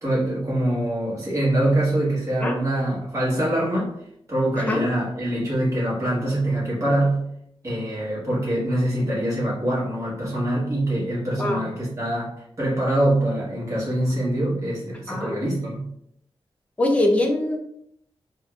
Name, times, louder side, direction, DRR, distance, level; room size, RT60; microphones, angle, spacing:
voice 1, 0.0-4.0 4.3-7.2 7.6-12.3 12.6-15.9, right 1 dB, 30° right, -7 dB, 1.3 m, -24 dB
voice 2, 16.8-17.6, left 1 dB, 15° left, 1 dB, 0.5 m, -22 dB
3.9 x 2.5 x 2.2 m, 0.74 s
wide cardioid pair, 165°, 10 cm